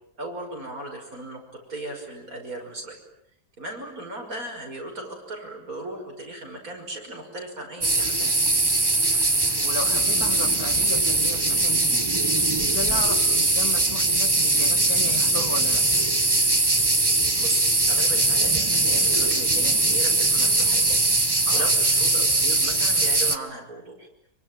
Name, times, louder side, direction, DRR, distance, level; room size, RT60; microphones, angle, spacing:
voice 1, 0.2-3.0 3.6-8.3 12.9-13.1 17.4-24.1, right 1 dB, 60° right, 1 dB, 6.5 m, -37 dB
sound 1, 7.8-23.4, right 2 dB, 15° right, 1.2 m, -21 dB
voice 2, 9.6-12.1 12.6-15.8 21.5-21.7, left 4 dB, 65° left, 6 dB, 2.8 m, -35 dB
26.0 x 24.5 x 9.1 m, 0.76 s
omnidirectional pair, 1.7 m